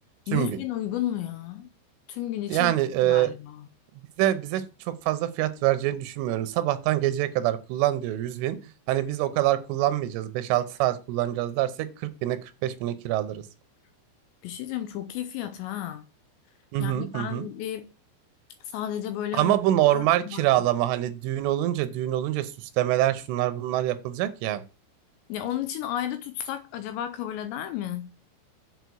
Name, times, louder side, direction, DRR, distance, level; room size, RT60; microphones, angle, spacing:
voice 1, 0.3-1.7 2.1-3.7 14.4-16.0 16.8-17.9 18.6-19.6 19.9-20.5 25.3-28.1, left 11 dB, 85° left, 2.6 m, -33 dB
voice 2, 2.5-3.3 4.2-8.6 8.9-13.4 16.7-17.5 19.3-24.6, right 14 dB, 85° right, 3.3 m, -25 dB
8.2 x 4.5 x 6.2 m
omnidirectional pair, 5.6 m